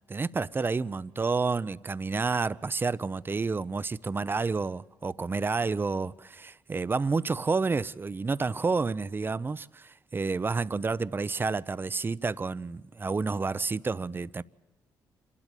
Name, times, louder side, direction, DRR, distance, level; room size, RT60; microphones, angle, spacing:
voice 1, 0.1-14.4, right 4 dB, 30° right, 0.6 m, -30 dB
26.5 x 12.5 x 9.0 m
cardioid pair, 70°, 8 cm